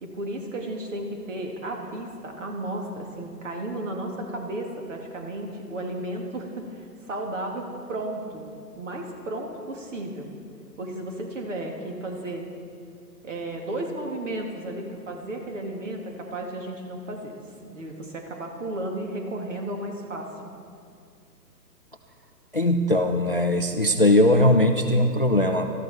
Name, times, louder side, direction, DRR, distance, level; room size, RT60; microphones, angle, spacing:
voice 1, 0.0-8.5 8.8-10.3 10.8-12.4 13.2-17.4 17.6-20.5, right 1 dB, 50° right, 2 dB, 2.1 m, -33 dB
voice 2, 22.5-25.7, left 1 dB, 40° left, 7 dB, 0.4 m, -20 dB
18.5 x 13.0 x 3.5 m, 2.4 s
figure-of-eight pair, 130°, 49 cm